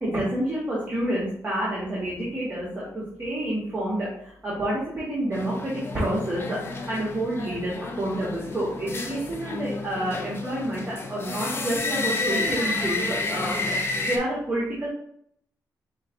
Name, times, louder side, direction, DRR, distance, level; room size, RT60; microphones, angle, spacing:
voice 1, 0.0-14.9, right 1 dB, 30° right, -7 dB, 1.7 m, -29 dB
sound 1, 5.3-14.2, left 3 dB, 35° left, 0.7 m, -30 dB
5.6 x 2.4 x 3.9 m, 0.66 s
cardioid pair, 115°, 7 cm